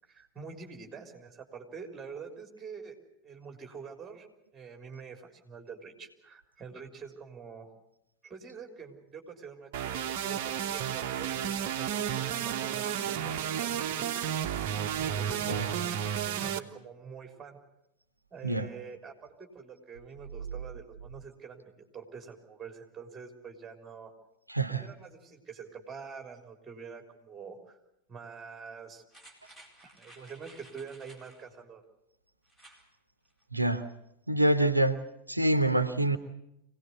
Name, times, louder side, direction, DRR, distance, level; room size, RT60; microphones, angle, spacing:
voice 1, 0.1-3.0 3.2-4.3 4.5-7.7 8.2-14.2 14.9-15.9 16.4-17.6 18.3-24.1 24.7-27.8 28.1-29.0 30.0-31.8, right 5 dB, 15° right, 4 dB, 3.7 m, -46 dB
sound 1, 9.7-16.6, right 9 dB, 50° right, 1.1 m, -32 dB
voice 2, 24.5-24.9 33.5-33.9 34.3-35.0 35.3-36.2, right 1 dB, 85° right, 11 dB, 0.9 m, -26 dB
sound 2, 29.1-31.5 32.5-32.9 33.3-33.4, right 1 dB, 10° left, 4.4 m, -55 dB
24.5 x 18.0 x 8.2 m, 0.83 s
figure-of-eight pair, 90°, 0 cm